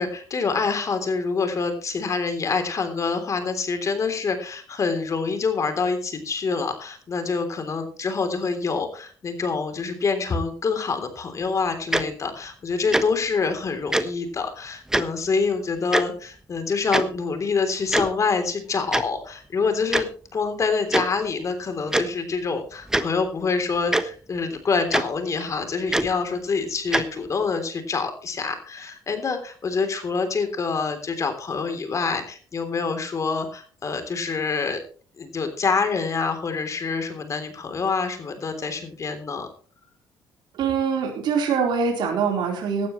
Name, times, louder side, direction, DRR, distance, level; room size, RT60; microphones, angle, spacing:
voice 1, 0.0-20.1 20.3-34.8 35.2-39.5, left 4 dB, 40° left, 7 dB, 3.4 m, -26 dB
Tick-tock, 11.9-12.0 12.9-13.0 13.9-14.0 14.9-15.0 15.9-16.0 16.9-17.0 17.9-18.1 18.9-19.0 19.9-20.0 20.9-21.0 21.9-22.0 22.9-23.0 23.9-24.0 24.9-25.0 25.9-26.1 26.9-27.0, right 1 dB, 5° right, 1.2 m, -21 dB
voice 2, 40.5-42.9, right 6 dB, 65° right, 1 dB, 4.2 m, -23 dB
17.5 x 12.5 x 3.2 m, 0.41 s
cardioid pair, 95°, 8 cm